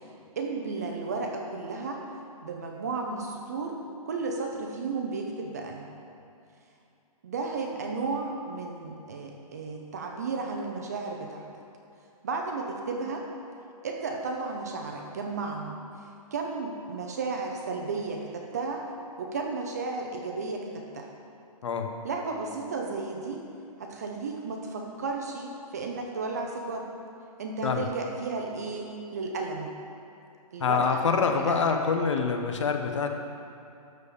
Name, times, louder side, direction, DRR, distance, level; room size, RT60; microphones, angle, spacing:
voice 1, 0.4-2.0 2.4-3.8 4.0-5.9 7.2-11.5 12.2-13.3 13.8-15.8 16.3-18.8 19.2-21.1 22.0-23.4 23.8-26.9 27.4-29.7 30.5-31.0 31.3-31.7, right 4 dB, 25° right, 1 dB, 0.6 m, -33 dB
voice 2, 30.6-33.1, left 5 dB, 50° left, 4 dB, 1.0 m, -26 dB
12.5 x 4.4 x 6.8 m, 2.6 s
hypercardioid pair, 175°, 19 cm